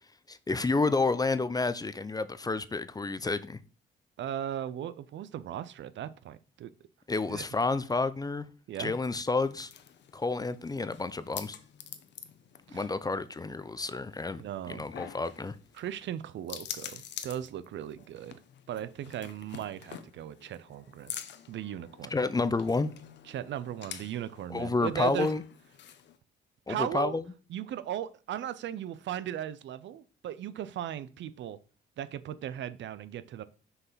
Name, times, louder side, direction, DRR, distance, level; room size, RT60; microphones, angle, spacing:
voice 1, 0.3-3.6 7.1-8.4 8.8-9.7 10.1-11.6 12.7-14.4 14.7-15.6 22.1-22.9 24.5-25.4 26.7-27.2, left 3 dB, 20° left, 0.6 m, -30 dB
voice 2, 4.2-6.7 7.3-7.4 8.7-8.9 12.7-12.9 14.4-14.9 15.8-18.4 18.7-21.2 21.5-22.1 23.3-25.3 26.7-27.2 27.5-31.6 32.0-33.4, right 11 dB, 70° right, 0.6 m, -37 dB
sound 1, 9.2-26.2, left 9 dB, 65° left, 0.9 m, -47 dB
6.5 x 4.7 x 5.6 m
cardioid pair, 90°, 20 cm